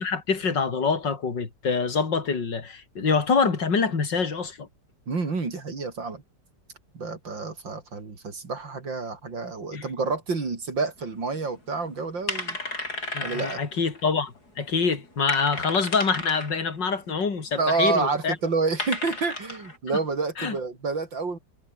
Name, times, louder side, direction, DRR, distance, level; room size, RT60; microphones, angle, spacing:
voice 1, 0.0-4.7 9.7-9.8 13.1-18.4 20.4-20.6, left 5 dB, 70° left, 3.9 m, -25 dB
voice 2, 5.1-6.2 6.9-12.6 13.2-13.6 17.6-21.4, right 4 dB, 80° right, 4.6 m, -28 dB
sound 1, 11.3-11.4 11.7-11.9 12.3-14.1 14.6-14.7 15.0-16.6 17.1-17.2 18.0-18.1 18.8-19.8, left 2 dB, 55° left, 7.3 m, -33 dB
omnidirectional pair, 2.0 m